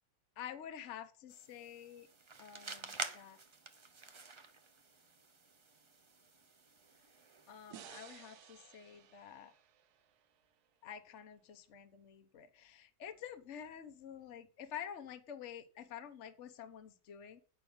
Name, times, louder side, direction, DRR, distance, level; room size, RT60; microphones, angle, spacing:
voice 1, 0.4-2.1 2.4-3.4 7.5-9.5 10.8-17.4, left 9 dB, 55° left, 8 dB, 1.1 m, -49 dB
sound 1, 1.3-7.7, right 4 dB, 50° right, 0.3 m, -49 dB
sound 2, 7.7-10.9, right 10 dB, 80° right, 1.3 m, -56 dB
8.9 x 5.7 x 5.1 m, 0.38 s
omnidirectional pair, 1.6 m